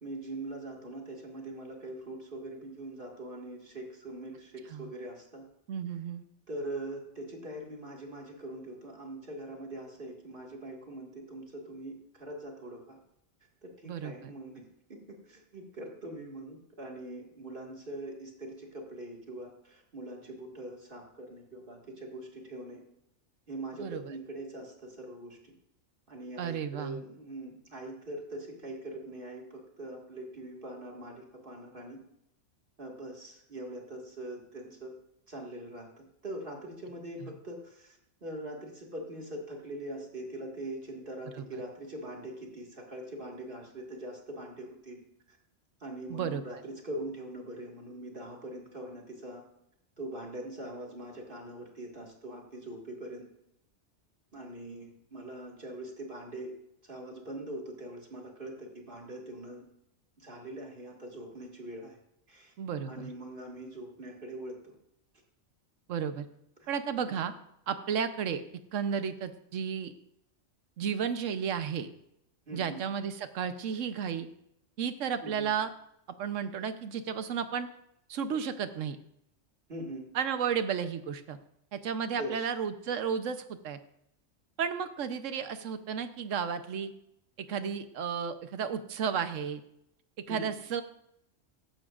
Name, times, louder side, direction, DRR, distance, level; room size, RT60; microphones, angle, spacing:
voice 1, 0.0-5.4 6.5-13.0 13.6-14.6 14.9-22.8 23.5-25.5 26.1-32.0 32.8-34.9 35.3-45.0 45.3-45.4 45.8-49.4 50.0-53.3 54.3-56.5 56.8-59.7 60.2-62.0 62.3-62.5 62.9-64.7 66.6-66.7 72.5-72.8 75.2-75.5 79.7-80.1 82.2-82.4 90.3-90.5, right 1 dB, 45° right, 0 dB, 2.1 m, -42 dB
voice 2, 5.7-6.2 13.8-14.1 23.8-24.0 26.4-27.0 37.2-37.3 41.4-41.5 46.1-46.6 62.6-63.1 65.9-66.3 66.7-67.3 67.7-68.4 68.7-69.9 70.8-71.9 72.5-74.3 74.8-75.7 76.2-77.7 78.1-79.0 80.1-81.4 81.7-83.8 84.6-86.9 87.4-89.6 90.3-90.8, right 7 dB, 85° right, 10 dB, 1.2 m, -33 dB
15.5 x 11.5 x 2.5 m, 0.79 s
omnidirectional pair, 1.3 m